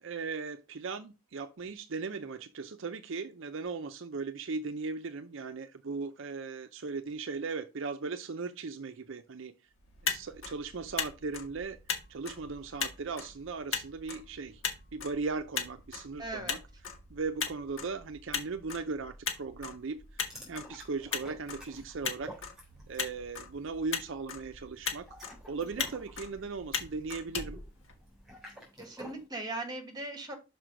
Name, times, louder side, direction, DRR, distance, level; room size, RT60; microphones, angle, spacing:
voice 1, 0.0-9.5 10.1-11.8 12.1-14.6 14.9-16.6 17.1-22.3 22.9-27.6, right 4 dB, 60° right, 0.5 m, -38 dB
Motor vehicle (road), 9.8-28.4, left 6 dB, 65° left, 1.5 m, -39 dB
voice 2, 16.2-16.6 28.8-30.3, right 2 dB, 20° right, 1.7 m, -39 dB
sound 1, 20.2-23.1 23.4-23.7 24.9-29.3, equal, ahead, 3.3 m, -50 dB
6.1 x 5.0 x 5.0 m
head